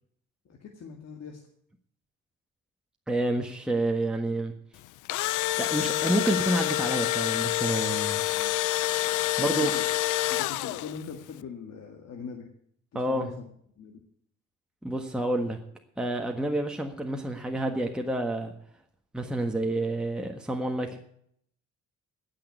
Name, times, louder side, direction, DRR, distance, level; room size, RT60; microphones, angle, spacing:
voice 1, 0.5-1.4 8.2-8.5 9.4-9.8 10.3-12.5 12.9-13.5 13.8-14.0, left 6 dB, 60° left, 2 dB, 1.9 m, -41 dB
voice 2, 3.1-4.5 5.6-8.2 9.4-9.7 12.9-13.3 14.8-15.6 16.0-18.5 19.1-21.0, right 1 dB, 5° right, 2 dB, 1.5 m, -29 dB
Engine / Drill, 4.8-11.1, left 17 dB, 85° left, 0.5 m, -27 dB
16.5 x 6.5 x 8.1 m, 0.67 s
cardioid pair, 90°, 30 cm